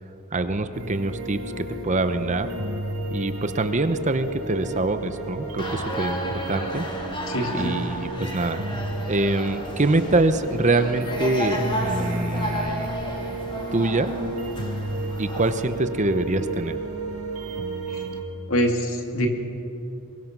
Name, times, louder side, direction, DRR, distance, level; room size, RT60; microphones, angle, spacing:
voice 1, 0.3-2.5 3.1-6.9 7.5-8.6 9.1-13.0 13.7-14.1 15.2-16.8, right 2 dB, 35° right, 10 dB, 0.9 m, -24 dB
sound 1, 0.7-18.2, right 2 dB, 75° right, 2.8 m, -33 dB
sound 2, 5.6-15.6, equal, 25° left, 2.8 m, -32 dB
voice 2, 7.3-7.8 18.5-19.3, equal, 70° left, 3 dB, 2.6 m, -24 dB
23.0 x 22.0 x 6.1 m, 2.9 s
head